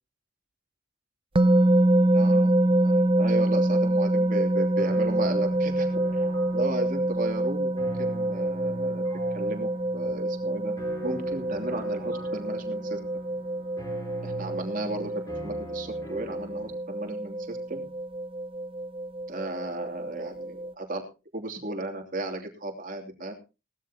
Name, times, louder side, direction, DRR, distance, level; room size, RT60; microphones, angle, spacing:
sound 1, 1.4-20.7, right 1 dB, 25° right, 0.6 m, -26 dB
voice 1, 2.1-5.9 6.1-6.2 6.5-9.0 9.3-10.7 11.0-13.0 14.2-17.8 19.3-21.0 21.3-23.3, right 2 dB, 40° right, 3 dB, 3.0 m, -35 dB
sound 2, 4.8-16.8, right 1 dB, 20° left, 5.4 m, -44 dB
18.5 x 13.0 x 2.9 m, 0.29 s
head